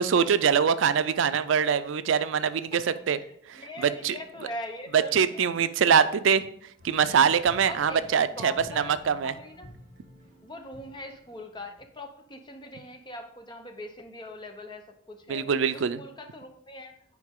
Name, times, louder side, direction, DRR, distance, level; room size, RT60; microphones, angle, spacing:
voice 1, 0.0-3.2 3.8-4.2 4.9-6.4 6.8-9.3 15.3-16.0, right 7 dB, 75° right, 13 dB, 0.4 m, -23 dB
voice 2, 3.2-5.3 5.8-6.1 7.7-8.0 8.4-9.7 10.4-15.5 15.7-16.9, left 1 dB, 25° left, 5 dB, 0.7 m, -41 dB
sound 1, 6.8-11.9, left 1 dB, 45° right, 2.3 m, -51 dB
9.3 x 4.9 x 3.6 m, 0.66 s
head